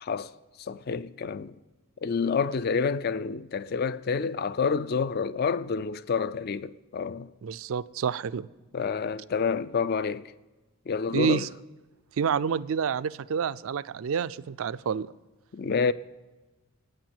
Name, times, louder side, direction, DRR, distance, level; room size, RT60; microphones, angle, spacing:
voice 1, 0.0-0.3 0.6-1.5 2.0-7.3 8.7-10.3 10.9-11.4 15.5-15.9, left 5 dB, 45° left, 0.4 m, -28 dB
voice 2, 7.4-8.5 11.1-11.5 12.2-15.1, right 7 dB, 65° right, 0.4 m, -28 dB
9.6 x 8.9 x 8.7 m
head